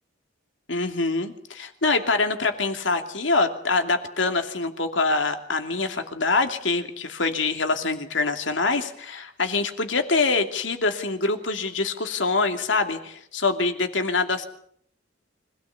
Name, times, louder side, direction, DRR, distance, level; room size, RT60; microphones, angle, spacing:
voice 1, 0.7-14.5, left 3 dB, 75° left, 6 dB, 2.7 m, -25 dB
25.5 x 17.0 x 8.5 m, 0.66 s
head